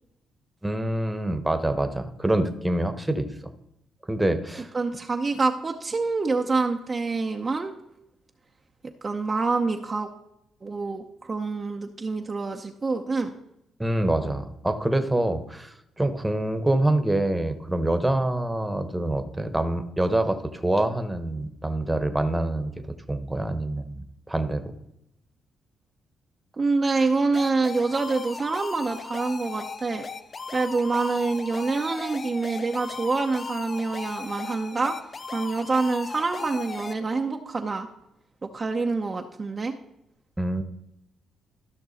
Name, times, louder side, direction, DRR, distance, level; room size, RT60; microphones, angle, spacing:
voice 1, 0.6-3.5 4.1-4.7 13.8-22.7 23.1-24.6 40.4-40.6, right 1 dB, 10° right, 8 dB, 1.1 m, -26 dB
voice 2, 4.7-7.7 9.0-10.1 10.6-13.3 26.6-30.0 30.5-35.0 35.3-37.9 38.4-39.7, right 3 dB, 30° right, 2 dB, 0.7 m, -26 dB
sound 1, 27.3-36.9, left 4 dB, 35° left, 0.5 m, -37 dB
14.0 x 6.1 x 4.1 m, 0.84 s
cardioid pair, 90°, 0 cm